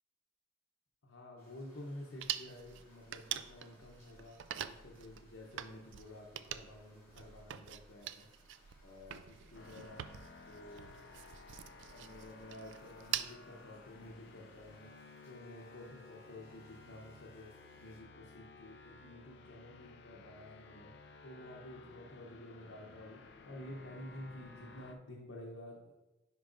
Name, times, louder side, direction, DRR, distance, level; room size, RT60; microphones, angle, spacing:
voice 1, 1.0-4.4 4.6-8.3 8.8-10.1 10.4-10.9 11.8-14.9 15.3-17.5 17.8-20.9 21.2-23.2 23.4-26.0, left 1 dB, 85° left, -2 dB, 0.8 m, -51 dB
sound 1, 1.4-18.0, left 1 dB, 15° left, 1.9 m, -68 dB
sound 2, 2.2-13.4, right 11 dB, 75° right, 0.3 m, -45 dB
sound 3, 9.5-24.9, left 3 dB, 60° left, 0.5 m, -56 dB
10.0 x 4.6 x 2.5 m, 1.1 s
head